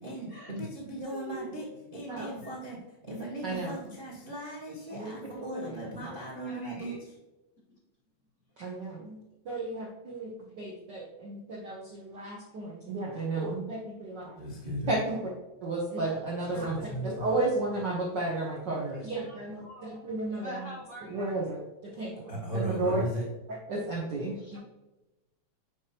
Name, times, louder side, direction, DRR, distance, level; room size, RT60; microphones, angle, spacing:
voice 1, 0.0-7.1 14.4-15.0 16.4-17.4 21.9-23.3, equal, 35° right, -4 dB, 0.8 m, -37 dB
voice 2, 1.1-1.5 2.4-2.6 6.0-6.1 6.4-7.0 7.7-7.8 18.9-20.0 20.4-21.5 24.3-24.6, left 1 dB, 35° left, -6 dB, 1.6 m, -45 dB
voice 3, 4.9-5.6 8.6-9.2 9.5-10.3 10.6-14.4 14.9-15.3 15.6-20.5 21.1-21.6 22.0-22.3 22.5-23.0 23.7-24.6, right 2 dB, 80° right, -2 dB, 0.9 m, -33 dB
7.7 x 4.9 x 2.8 m, 1.0 s
omnidirectional pair, 3.4 m